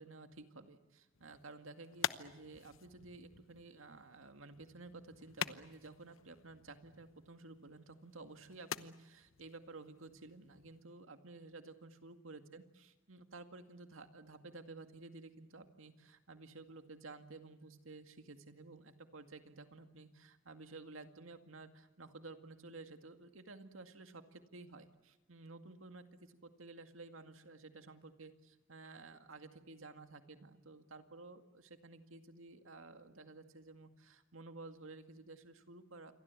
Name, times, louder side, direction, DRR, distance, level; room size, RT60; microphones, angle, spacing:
voice 1, 0.0-36.1, right 3 dB, 90° right, 7 dB, 2.1 m, -53 dB
sound 1, 1.1-10.9, left 8 dB, 80° left, 0.9 m, -47 dB
28.0 x 23.5 x 8.3 m, 1.0 s
head